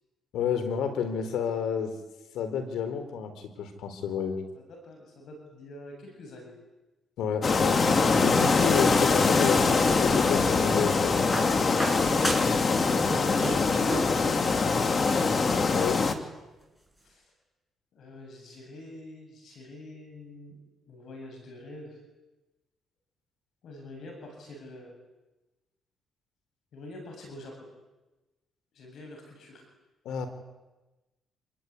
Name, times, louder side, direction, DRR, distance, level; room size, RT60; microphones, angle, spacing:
voice 1, 0.3-1.9 2.3-4.4 7.2-7.8 8.2-11.3 15.7-16.1 30.0-30.3, left 7 dB, 80° left, 9 dB, 4.2 m, -30 dB
voice 2, 4.5-6.5 17.0-17.3 17.9-22.0 23.6-24.9 26.7-27.7 28.7-29.6, left 1 dB, 65° left, 3 dB, 7.8 m, -45 dB
sound 1, 7.4-16.1, left 4 dB, 40° left, 2.7 m, -23 dB
sound 2, 9.7-10.5 11.3-12.7 12.9-14.2 15.3-15.4, right 1 dB, 5° left, 7.4 m, -34 dB
27.5 x 22.0 x 9.8 m, 1.1 s
cardioid pair, 90°, 0 cm